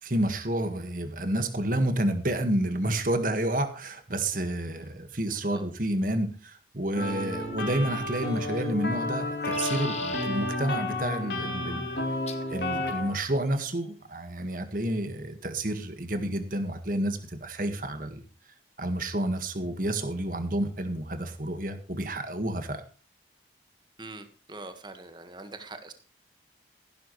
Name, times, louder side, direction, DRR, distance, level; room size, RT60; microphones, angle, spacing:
voice 1, 0.0-11.9 12.5-18.2 18.8-22.8, right 1 dB, 45° right, 8 dB, 1.8 m, -30 dB
sound 1, 6.9-13.1, left 1 dB, 65° left, 3.8 m, -31 dB
sound 2, 8.2-8.7 9.2-10.3 12.3-12.5 13.5-13.9, left 7 dB, 35° left, 1.5 m, -41 dB
voice 2, 24.0-25.9, right 2 dB, 25° right, 8 dB, 1.6 m, -43 dB
15.0 x 12.0 x 3.2 m, 0.37 s
head